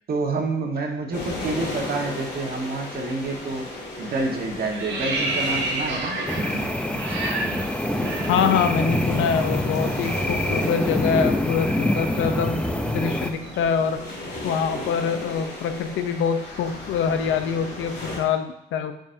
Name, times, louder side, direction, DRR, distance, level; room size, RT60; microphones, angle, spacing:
voice 1, 0.1-3.6 4.0-6.2, right 3 dB, 50° right, 1 dB, 1.4 m, -28 dB
sound 1, 1.1-18.2, left 1 dB, 55° left, 2.6 m, -35 dB
sound 2, 3.5-3.8 4.1-9.0 9.3-9.5 9.8-13.8, right 2 dB, 70° right, 1.3 m, -31 dB
sound 3, 6.3-13.3, left 1 dB, 5° left, 0.5 m, -26 dB
voice 2, 8.3-14.0 14.4-18.9, left 6 dB, 80° left, 8 dB, 0.7 m, -25 dB
9.6 x 5.2 x 2.7 m, 0.77 s
cardioid pair, 90°, 20 cm